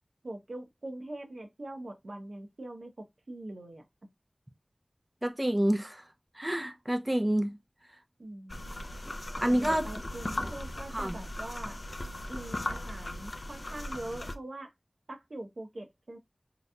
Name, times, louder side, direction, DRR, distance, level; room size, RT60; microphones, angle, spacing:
voice 1, 0.2-3.8 8.2-8.9 9.4-11.8 12.3-14.7 15.1-16.2, right 1 dB, 80° right, 0.7 m, -43 dB
voice 2, 5.2-6.0 6.4-7.6 9.4-9.9 10.9-11.2, right 1 dB, 20° right, 0.6 m, -28 dB
sound 1, 8.5-14.4, left 1 dB, 60° left, 0.4 m, -38 dB
3.8 x 2.8 x 2.2 m
wide cardioid pair, 55°, 0 cm